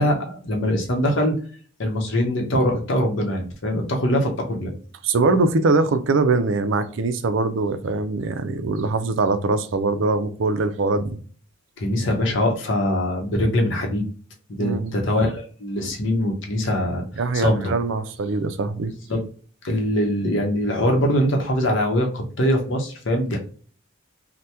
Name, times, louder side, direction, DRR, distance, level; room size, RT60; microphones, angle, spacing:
voice 1, 0.0-1.3 1.8-4.7 11.8-14.1 14.6-17.1 17.3-17.7 19.1-19.2 19.6-23.4, left 1 dB, 60° left, 0.7 m, -22 dB
voice 2, 5.0-11.2 14.6-14.9 17.2-18.9, right 3 dB, 65° right, 0.4 m, -22 dB
2.8 x 2.1 x 3.3 m
head